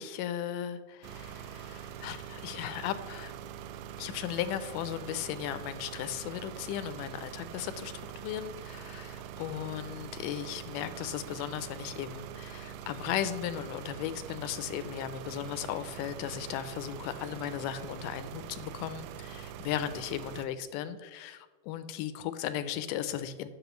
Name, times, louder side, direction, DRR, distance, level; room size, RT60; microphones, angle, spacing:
voice 1, 0.0-3.3 4.0-23.5, left 10 dB, 85° left, 12 dB, 2.1 m, -36 dB
sound 1, 1.0-20.5, right 9 dB, 85° right, 2.1 m, -44 dB
10.0 x 6.7 x 3.0 m, 1.3 s
omnidirectional pair, 3.8 m